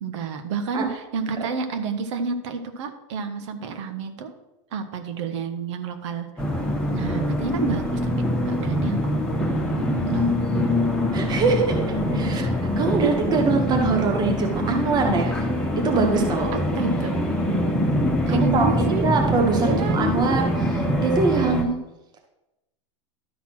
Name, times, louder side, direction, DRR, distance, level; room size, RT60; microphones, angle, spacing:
voice 1, 0.0-4.3 4.7-6.3 6.9-8.1 8.4-9.2 10.1-10.4 12.3-12.5 13.0-13.2 16.5-17.2 18.3-19.1 19.6-20.0, right 5 dB, 70° right, 7 dB, 1.4 m, -29 dB
sound 1, 6.4-21.6, left 1 dB, 5° left, 1.4 m, -24 dB
voice 2, 9.8-10.2 10.5-10.7 11.1-15.5 15.8-16.5 18.3-21.8, right 4 dB, 25° right, 2 dB, 1.3 m, -24 dB
12.0 x 4.2 x 6.1 m, 0.96 s
supercardioid pair, 130°, 16 cm